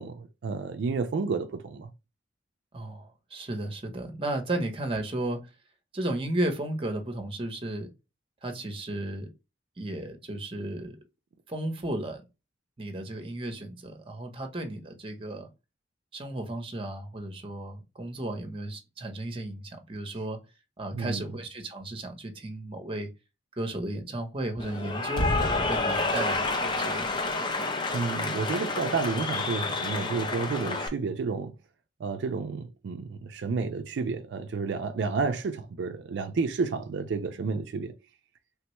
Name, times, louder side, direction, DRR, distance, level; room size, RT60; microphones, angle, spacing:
voice 1, 0.0-1.9 20.9-21.3 27.9-31.5 32.0-37.9, right 4 dB, 70° right, 0.4 m, -31 dB
voice 2, 2.7-5.4 5.9-7.9 8.4-9.3 9.8-11.0 11.5-12.2 12.8-15.5 16.1-20.4 20.8-23.1 23.6-27.2, right 1 dB, 30° right, 0.7 m, -34 dB
Cheering / Applause, 24.6-30.9, left 3 dB, 25° left, 0.5 m, -29 dB
3.4 x 2.2 x 2.9 m
head